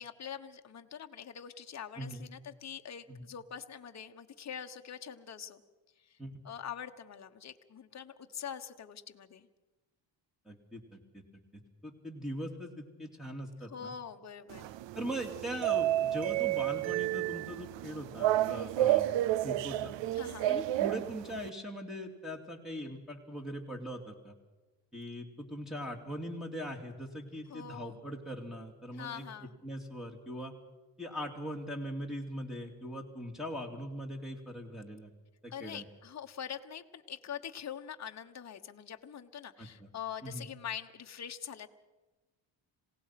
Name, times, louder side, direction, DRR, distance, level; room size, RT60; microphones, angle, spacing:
voice 1, 0.0-5.6 6.0-6.2 6.4-9.5 13.7-14.7 20.1-20.5 27.5-28.0 28.9-29.5 35.5-41.7, left 8 dB, 35° left, 6 dB, 1.3 m, -44 dB
voice 2, 2.0-2.3 3.1-3.2 6.2-6.4 10.5-11.2 11.5-13.9 14.9-19.1 19.4-19.9 20.5-24.4 24.9-29.3 29.6-30.5 31.0-35.1 35.4-35.8 39.6-39.9 40.2-40.4, equal, ahead, -2 dB, 2.6 m, -41 dB
sound 1, 14.5-21.5, right 14 dB, 70° right, 0.7 m, -31 dB
27.0 x 17.5 x 6.0 m, 1.1 s
cardioid pair, 100°, 45 cm